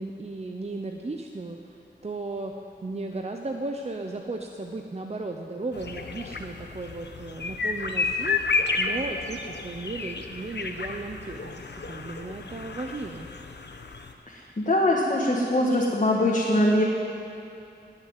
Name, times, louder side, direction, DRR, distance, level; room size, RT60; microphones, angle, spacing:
voice 1, 0.0-2.5 2.8-13.3, right 2 dB, 35° right, 3 dB, 0.8 m, -35 dB
sound 1, 5.7-14.1, left 4 dB, 65° left, 1.0 m, -31 dB
voice 2, 14.3-16.8, left 1 dB, 40° left, -4 dB, 1.7 m, -22 dB
19.0 x 6.5 x 9.4 m, 2.7 s
wide cardioid pair, 100°, 19 cm